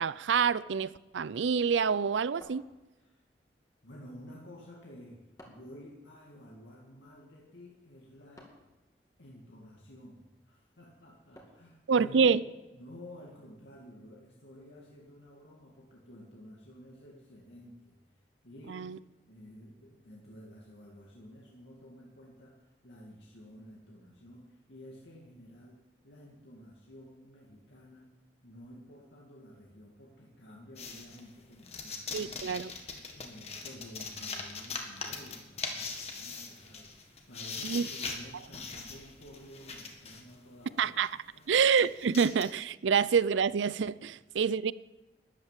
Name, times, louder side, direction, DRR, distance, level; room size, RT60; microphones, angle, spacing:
voice 1, 0.0-2.6 11.9-12.4 18.7-19.0 32.1-32.7 37.6-37.9 40.8-41.1 41.5-44.7, right 6 dB, 90° right, 0.5 m, -27 dB
sound 1, 2.4-3.3 5.4-5.8 8.4-8.8 11.4-11.8, equal, 20° left, 2.3 m, -55 dB
voice 2, 3.8-5.2 5.4-8.5 9.2-12.3 12.7-18.0 18.4-18.9 19.3-28.1 28.4-41.0 41.3-41.6, equal, 80° left, 2.2 m, -52 dB
sound 2, 30.8-40.3 41.0-41.1 41.4-42.4, left 4 dB, 35° left, 1.8 m, -41 dB
12.5 x 11.5 x 7.4 m
head